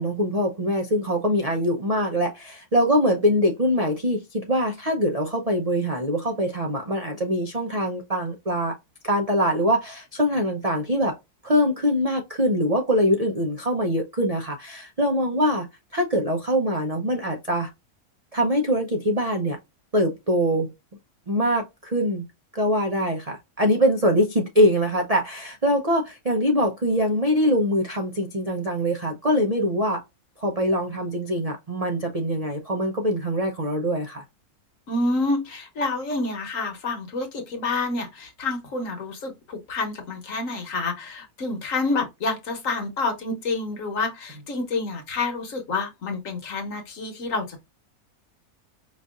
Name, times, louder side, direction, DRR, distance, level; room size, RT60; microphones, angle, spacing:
voice 1, 0.0-8.8 9.0-11.2 11.4-15.7 15.9-17.7 18.3-19.6 19.9-20.7 21.3-22.3 22.5-30.0 30.4-34.2, equal, 45° right, 0.5 m, -23 dB
voice 2, 34.9-47.6, left 3 dB, 60° left, 1.4 m, -28 dB
5.2 x 2.6 x 2.3 m
omnidirectional pair, 1.7 m